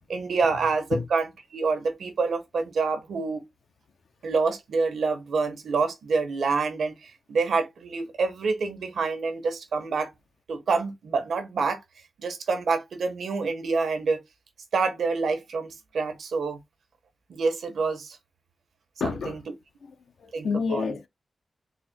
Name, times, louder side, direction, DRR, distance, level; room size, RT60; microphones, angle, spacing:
voice 1, 0.1-1.3 1.5-3.4 4.2-10.1 10.5-11.8 12.2-14.2 14.7-16.6 17.3-18.2 19.0-19.4 20.3-20.9, right 4 dB, 90° right, 1.0 m, -27 dB
voice 2, 19.0-19.4 20.2-21.1, left 5 dB, 80° left, 0.5 m, -28 dB
4.1 x 2.1 x 4.3 m
wide cardioid pair, 100°, 0 cm